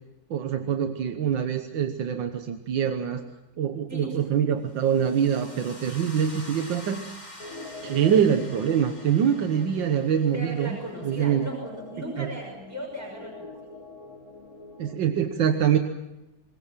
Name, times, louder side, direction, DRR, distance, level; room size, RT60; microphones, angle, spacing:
voice 1, 0.3-3.2 3.6-7.0 7.8-10.8 11.0-11.5 12.2-12.3 14.8-15.8, right 8 dB, 85° right, 7 dB, 1.8 m, -24 dB
voice 2, 3.9-4.5 10.3-13.7, right 1 dB, 10° right, 0 dB, 5.7 m, -37 dB
sound 1, 4.7-11.6, left 1 dB, 20° left, 3.9 m, -46 dB
sound 2, 7.4-14.9, left 2 dB, 55° left, 3.3 m, -44 dB
25.0 x 21.0 x 7.4 m, 0.97 s
omnidirectional pair, 2.0 m